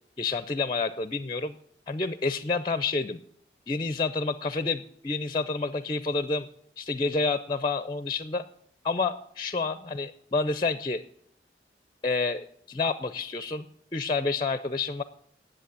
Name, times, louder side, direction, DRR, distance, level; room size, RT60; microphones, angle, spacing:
voice 1, 0.2-1.5 1.9-3.2 3.7-6.5 6.8-8.4 8.8-11.0 12.0-13.7 13.9-15.0, left 3 dB, 25° left, 13 dB, 0.5 m, -29 dB
10.5 x 7.8 x 8.2 m, 0.64 s
head